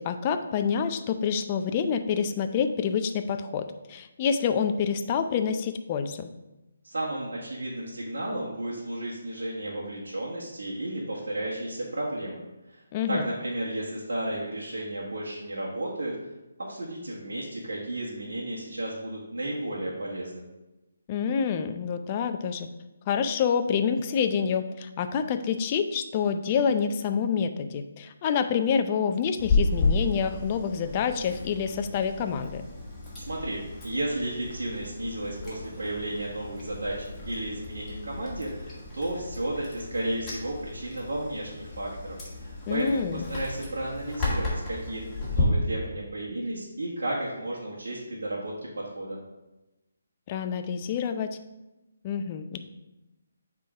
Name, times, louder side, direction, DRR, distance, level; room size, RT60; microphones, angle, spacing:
voice 1, 0.0-6.3 12.9-13.3 21.1-22.7 23.1-32.6 42.7-43.2 50.3-51.4 52.0-52.6, left 7 dB, 30° left, 8 dB, 0.5 m, -27 dB
voice 2, 6.8-12.4 12.7-12.8 13.1-16.1 16.6-20.4 33.2-45.0 45.3-49.2, right 1 dB, 75° right, -6 dB, 1.5 m, -33 dB
Chewing mastication, 29.4-45.4, left 3 dB, 10° left, 2.0 m, -33 dB
7.5 x 3.8 x 4.7 m, 1.0 s
figure-of-eight pair, 150°, 0 cm